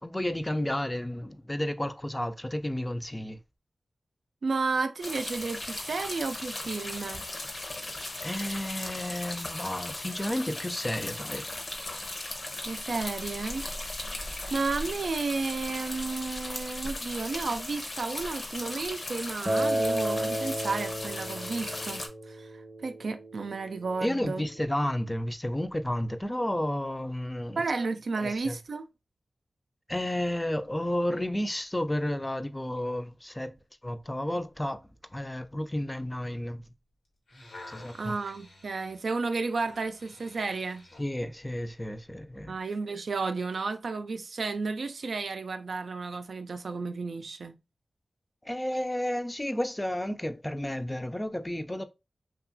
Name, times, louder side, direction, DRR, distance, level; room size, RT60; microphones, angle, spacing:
voice 1, 0.0-3.4 8.2-11.5 24.0-27.6 28.2-28.6 29.9-33.5 33.8-34.8 35.1-36.6 37.7-38.1 41.0-42.6 48.4-51.8, left 1 dB, 15° left, 0.4 m, -32 dB
voice 2, 4.4-7.2 12.6-13.6 14.5-22.5 22.8-24.4 27.6-28.8 37.9-40.8 42.5-47.5, right 4 dB, 80° right, 0.3 m, -32 dB
sound 1, 5.0-22.1, left 2 dB, 60° left, 0.7 m, -37 dB
Acoustic guitar, 19.5-24.7, right 1 dB, 25° right, 0.7 m, -33 dB
sound 2, 37.0-41.1 41.8-41.9, left 2 dB, 90° left, 1.0 m, -50 dB
2.9 x 2.3 x 2.6 m
cardioid pair, 55°, 0 cm